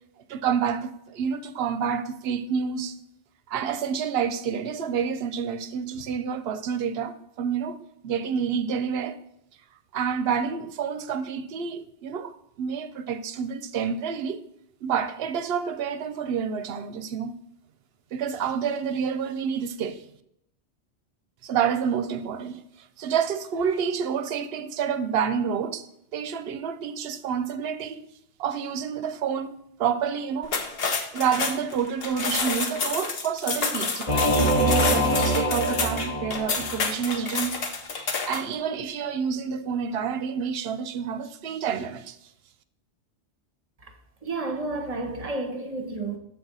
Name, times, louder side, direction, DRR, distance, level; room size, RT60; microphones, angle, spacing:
voice 1, 0.3-3.0 3.5-9.2 9.9-14.4 14.8-17.3 18.1-20.0 21.4-25.9 26.1-28.1 28.4-30.6 31.1-37.6 38.0-42.2, right 7 dB, 65° right, 0.8 m, -28 dB
sound 1, 30.4-38.5, left 4 dB, 60° left, 1.0 m, -29 dB
Singing / Musical instrument, 34.1-36.9, right 1 dB, 30° left, 1.1 m, -24 dB
voice 2, 44.2-46.2, right 2 dB, 35° right, 1.0 m, -31 dB
7.3 x 4.0 x 6.0 m
omnidirectional pair, 1.2 m